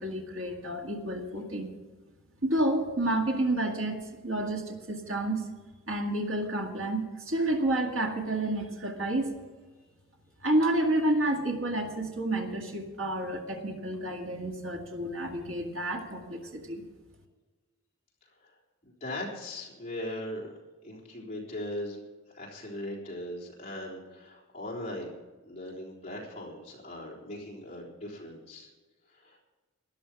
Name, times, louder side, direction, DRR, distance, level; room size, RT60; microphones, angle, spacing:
voice 1, 0.0-1.7 2.4-5.4 5.9-9.3 10.4-16.8, right 1 dB, 65° right, 1 dB, 2.0 m, -30 dB
voice 2, 19.0-20.5 20.8-22.0 22.3-25.1 25.4-28.7 29.1-29.4, left 1 dB, 30° left, -3 dB, 3.6 m, -39 dB
13.0 x 11.0 x 6.0 m, 1.3 s
head